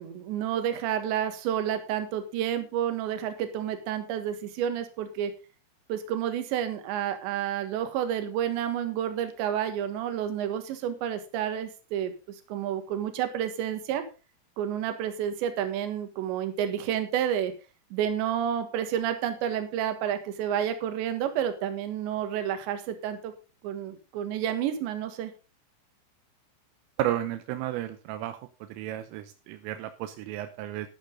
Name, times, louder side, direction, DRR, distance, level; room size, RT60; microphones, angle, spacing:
voice 1, 0.0-5.3 5.9-14.0 14.6-17.5 17.9-23.3 23.6-25.3, right 10 dB, 65° right, 8 dB, 3.6 m, -30 dB
voice 2, 27.0-28.4 28.7-30.9, right 13 dB, 85° right, 9 dB, 3.4 m, -32 dB
12.0 x 11.5 x 3.8 m, 0.31 s
omnidirectional pair, 5.8 m